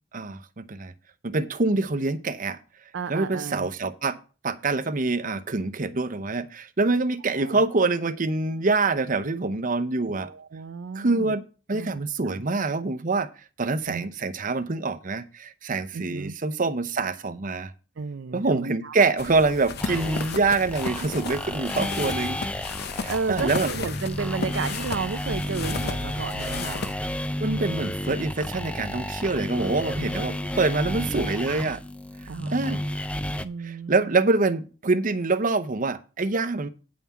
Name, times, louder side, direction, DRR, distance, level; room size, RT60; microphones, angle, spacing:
voice 1, 0.1-0.9 1.2-2.6 3.1-4.2 4.4-10.3 10.9-11.4 11.7-13.3 13.6-17.7 18.3-22.4 22.9-23.7 27.4-31.8 32.2-32.8 33.6-36.7, right 3 dB, 45° right, 0.8 m, -25 dB
voice 2, 2.9-3.7 7.3-7.6 10.0-11.4 11.7-12.4 13.9-14.1 15.9-16.3 18.0-18.9 21.8-21.9 22.2-22.3 23.1-26.8 29.9-30.1 30.5-30.9 32.3-32.8 33.4-34.2, right 5 dB, 70° right, 0.5 m, -33 dB
sound 1, 19.2-26.9, left 4 dB, 60° left, 0.8 m, -34 dB
sound 2, 19.8-33.5, left 1 dB, 5° left, 0.5 m, -32 dB
9.8 x 5.6 x 5.9 m
head